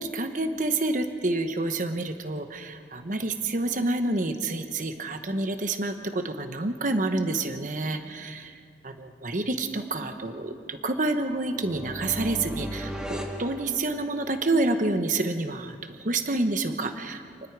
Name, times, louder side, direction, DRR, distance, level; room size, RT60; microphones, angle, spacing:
voice 1, 0.1-8.5 8.8-15.8 16.0-17.2, right 2 dB, 45° right, 7 dB, 1.1 m, -28 dB
sound 1, 11.3-14.4, equal, 5° right, 1.7 m, -36 dB
29.5 x 20.0 x 4.7 m, 2.1 s
head